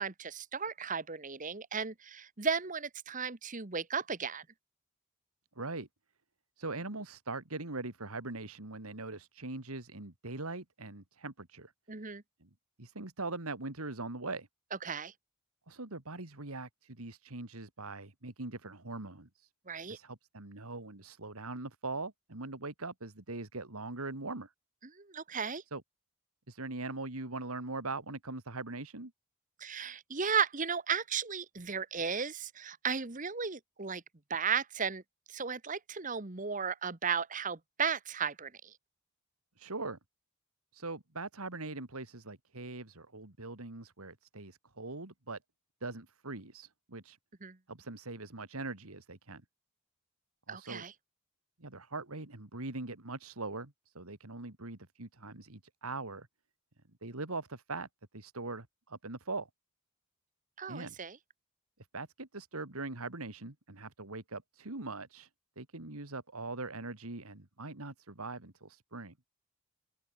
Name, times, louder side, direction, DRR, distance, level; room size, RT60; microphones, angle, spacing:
voice 1, 0.0-4.4 11.9-12.2 14.8-15.1 19.7-20.0 24.9-25.6 29.6-34.0 34.3-35.0 35.3-38.7 47.4-47.6 50.5-50.9 60.6-61.2, right 6 dB, 35° right, 1.3 m, -35 dB
voice 2, 5.6-5.9 6.6-11.7 12.4-12.5 12.8-14.5 15.7-19.5 19.9-24.5 25.7-25.8 26.5-29.1 39.6-40.0 40.7-45.4 45.8-47.2 47.7-49.4 50.5-50.8 51.6-56.3 57.0-57.9 58.1-59.5 60.7-60.9 61.9-65.3 65.6-69.1, right 3 dB, 80° right, 2.6 m, -41 dB
open air
head